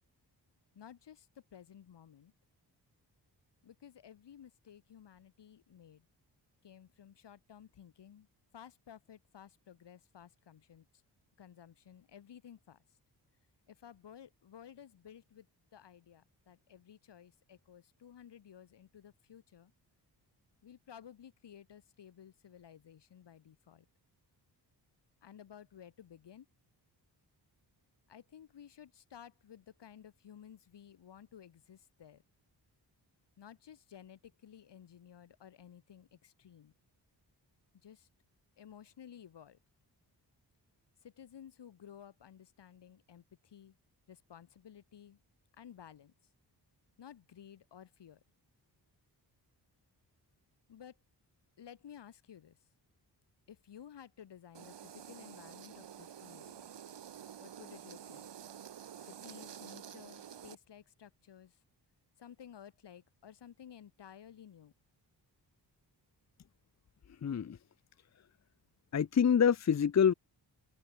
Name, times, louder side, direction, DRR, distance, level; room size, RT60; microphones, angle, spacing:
voice 1, 0.8-2.3 3.6-6.0 6.6-8.3 8.5-10.9 11.4-12.8 13.7-15.5 15.7-19.7 20.6-23.9 25.2-26.5 28.1-32.2 33.4-36.7 37.8-38.1 38.6-39.6 41.0-43.7 44.1-45.2 45.6-46.1 47.0-48.2 50.7-51.0 51.6-52.6 53.5-56.6 57.4-58.3 59.0-61.6 62.2-64.7, left 9 dB, 80° left, 3.6 m, -55 dB
sound 1, 54.5-60.6, right 9 dB, 85° right, 4.1 m, -49 dB
voice 2, 67.2-67.6 68.9-70.1, left 7 dB, 40° left, 0.8 m, -26 dB
open air
wide cardioid pair, 125°, 41 cm